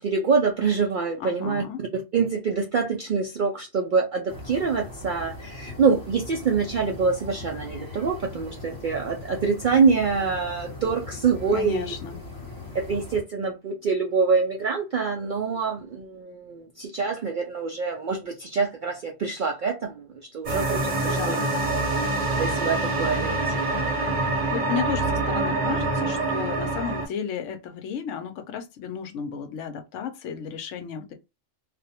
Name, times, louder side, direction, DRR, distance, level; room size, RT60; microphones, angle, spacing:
voice 1, 0.0-1.6 1.9-11.9 12.7-21.4 22.3-23.7, right 5 dB, 70° right, 0.4 m, -25 dB
voice 2, 1.2-1.8 11.5-12.2 21.0-21.5 24.5-31.1, left 7 dB, 75° left, 0.9 m, -33 dB
sound 1, 4.3-13.2, left 3 dB, 20° left, 0.6 m, -40 dB
sound 2, 20.4-27.1, right 2 dB, 40° right, 0.7 m, -25 dB
2.5 x 2.1 x 2.8 m
omnidirectional pair, 1.4 m